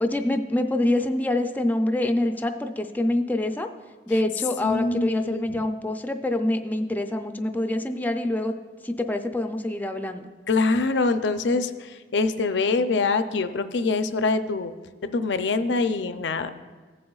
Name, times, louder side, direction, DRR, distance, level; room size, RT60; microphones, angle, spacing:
voice 1, 0.0-3.7 4.1-8.5 8.8-10.3, left 1 dB, 10° left, 6 dB, 0.4 m, -25 dB
voice 2, 4.6-5.7 10.5-14.7 15.1-16.5, left 3 dB, 80° left, 10 dB, 0.5 m, -24 dB
16.0 x 7.6 x 2.4 m, 1.4 s
head